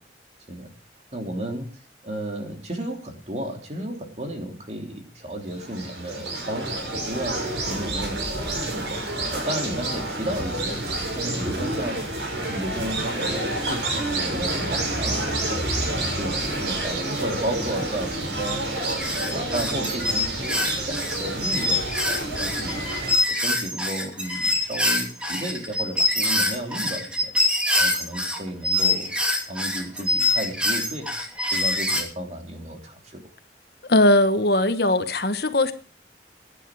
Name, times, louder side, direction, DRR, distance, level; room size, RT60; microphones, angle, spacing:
voice 1, 1.1-9.0 9.3-10.8 11.1-12.0 12.5-15.3 15.9-18.6 19.1-22.9 23.3-27.3 27.8-29.1 29.5-31.1 31.5-33.2, right 1 dB, 40° right, 3 dB, 3.0 m, -33 dB
sound 1, 5.5-23.1, right 2 dB, 90° right, 6.2 m, -29 dB
sound 2, 18.9-28.4 28.6-32.0, left 2 dB, 5° right, 2.7 m, -24 dB
voice 2, 33.9-35.7, left 1 dB, 60° left, 9 dB, 1.3 m, -19 dB
16.5 x 10.0 x 4.9 m, 0.37 s
head